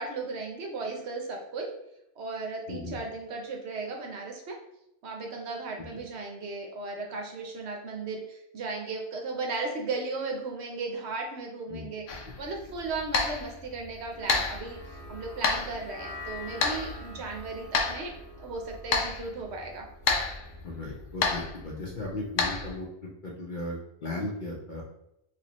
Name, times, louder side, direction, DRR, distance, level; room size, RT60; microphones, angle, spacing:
voice 1, 0.0-1.7 2.2-4.6 5.0-18.1 18.4-19.9, right 3 dB, 65° right, 1 dB, 0.9 m, -36 dB
sound 1, 12.1-22.8, left 4 dB, 85° left, 1.0 m, -32 dB
sound 2, 14.1-20.5, left 1 dB, 10° right, 0.6 m, -46 dB
voice 2, 20.6-22.9 23.2-24.8, left 2 dB, 50° left, -2 dB, 0.6 m, -36 dB
3.3 x 2.9 x 2.9 m, 0.82 s
omnidirectional pair, 1.2 m